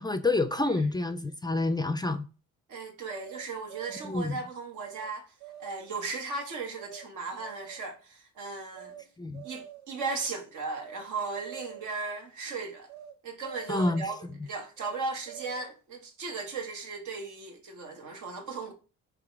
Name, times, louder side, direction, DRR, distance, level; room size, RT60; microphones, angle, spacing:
voice 1, 0.0-2.2 4.0-4.4 9.2-9.4 13.7-14.1, left 2 dB, 15° left, 0.4 m, -28 dB
voice 2, 2.7-5.3 5.6-9.0 9.4-12.9 13.2-18.7, right 4 dB, 80° right, 1.3 m, -36 dB
sound 1, 3.1-4.2 4.8-5.1 5.4-6.0 6.8-7.0 7.4-7.9 8.7-9.0 9.3-10.0 10.7-11.0 11.3-12.0 12.9-13.1 13.4-14.2 14.8-15.8, right 11 dB, 65° right, 0.8 m, -46 dB
3.8 x 3.0 x 4.6 m
cardioid pair, 90°, 30 cm